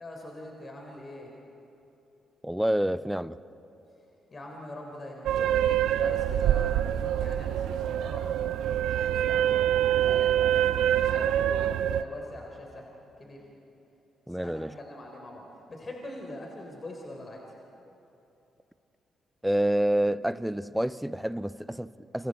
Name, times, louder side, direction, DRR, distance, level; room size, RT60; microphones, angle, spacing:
voice 1, 0.0-1.4 4.3-10.7 11.0-12.9 13.2-13.4 14.3-17.4, left 1 dB, 40° left, 3.9 m, -43 dB
voice 2, 2.4-3.4 14.3-14.7 19.4-22.3, right 1 dB, 5° right, 0.7 m, -28 dB
sound 1, 5.3-12.0, right 11 dB, 70° right, 0.5 m, -25 dB
28.5 x 27.0 x 4.4 m
hypercardioid pair, 40°, 0 cm